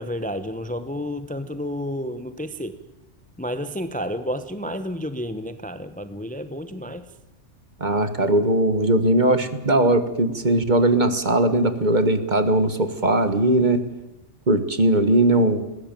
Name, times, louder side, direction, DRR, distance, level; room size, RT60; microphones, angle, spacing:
voice 1, 0.0-2.8 3.4-7.1, equal, 10° left, 11 dB, 0.8 m, -30 dB
voice 2, 7.8-13.8 14.5-15.7, right 1 dB, 40° right, 11 dB, 1.6 m, -19 dB
20.5 x 16.0 x 9.1 m, 0.98 s
omnidirectional pair, 1.3 m